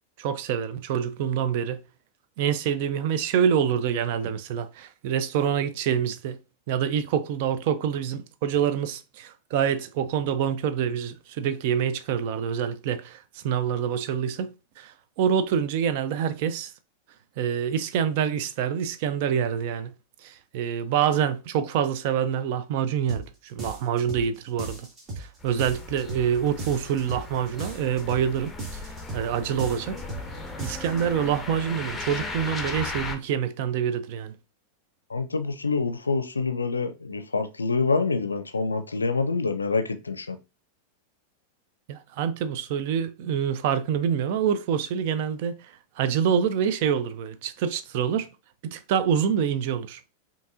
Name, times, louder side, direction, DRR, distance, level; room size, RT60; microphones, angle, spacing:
voice 1, 0.2-1.8 2.4-6.4 6.7-14.5 14.8-16.7 17.4-19.9 20.2-24.9 25.2-28.5 29.1-30.0 30.6-34.3 41.9-48.3 48.6-50.0, right 8 dB, 50° right, 0.4 m, -26 dB
sound 1, 23.1-23.3 23.6-24.3 24.6-25.3 25.6-26.3 26.6-27.3 27.6-28.3 28.6-29.3 29.6-30.3 30.6-31.0, right 2 dB, 25° right, 1.6 m, -36 dB
sound 2, 25.4-33.2, left 3 dB, 10° left, 0.7 m, -37 dB
voice 2, 35.1-40.4, left 4 dB, 75° left, 0.5 m, -26 dB
5.2 x 2.8 x 2.5 m
figure-of-eight pair, 90°, 0 cm